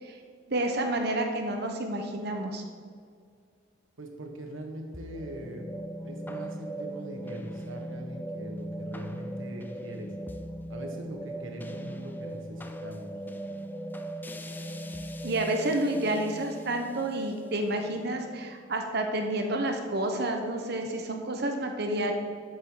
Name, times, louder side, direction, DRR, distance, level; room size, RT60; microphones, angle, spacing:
voice 1, 0.5-2.6 15.2-22.1, right 1 dB, 55° right, 4 dB, 1.2 m, -29 dB
voice 2, 4.0-5.7 6.0-10.1 10.7-13.1, right 1 dB, 80° right, 2 dB, 1.6 m, -42 dB
sound 1, 4.9-19.4, right 1 dB, 10° left, 0.4 m, -39 dB
12.5 x 7.9 x 4.0 m, 2.1 s
head